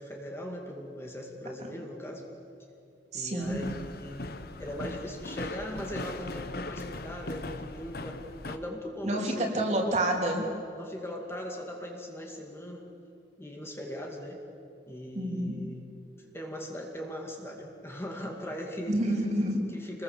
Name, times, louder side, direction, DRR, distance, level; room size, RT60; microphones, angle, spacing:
voice 1, 0.0-2.3 3.1-4.3 4.6-9.8 10.8-12.9 13.4-14.4 14.9-15.9 16.2-19.0 19.7-20.0, equal, 15° left, 0 dB, 2.2 m, -39 dB
voice 2, 3.1-3.6 9.0-10.4 15.1-15.5 18.9-19.6, right 1 dB, 40° right, 1 dB, 3.4 m, -28 dB
sound 1, 3.4-8.6, left 2 dB, 55° left, 1.1 m, -39 dB
26.5 x 21.0 x 7.3 m, 2.6 s
head